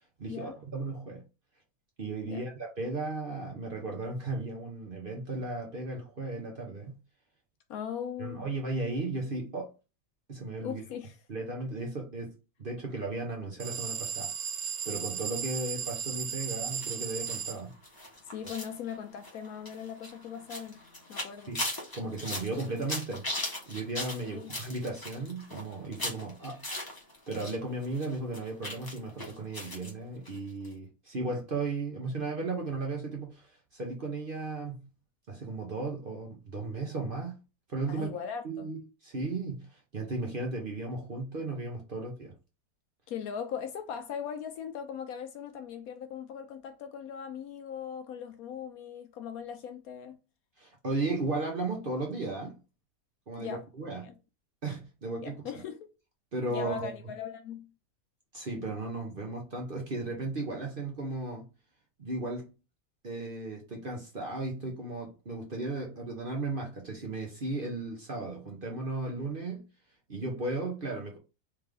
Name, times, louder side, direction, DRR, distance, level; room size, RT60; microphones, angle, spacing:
voice 1, 0.2-1.2 2.0-6.9 8.2-9.7 10.3-10.8 11.3-14.3 14.8-17.7 21.5-21.6 21.9-23.3 23.7-26.6 27.3-34.9 35.3-37.4 37.7-38.1 38.4-42.3 50.6-52.6 53.3-54.1 54.6-55.5 56.3-56.9 58.3-61.5 62.0-62.5 63.0-69.6 70.1-71.2, right 2 dB, 40° right, 0.9 m, -35 dB
voice 2, 7.7-8.5 10.6-11.2 18.3-20.8 21.1-21.5 24.2-24.5 37.9-38.7 43.1-50.2 53.4-53.6 54.0-54.1 55.2-55.9 56.5-57.7, left 8 dB, 70° left, 1.0 m, -39 dB
sound 1, 13.6-17.6, right 7 dB, 85° right, 0.4 m, -35 dB
sound 2, 16.7-27.6 27.8-29.9 30.2-30.4 30.6-30.7, left 1 dB, 15° left, 0.9 m, -39 dB
3.4 x 3.2 x 3.6 m
omnidirectional pair, 1.7 m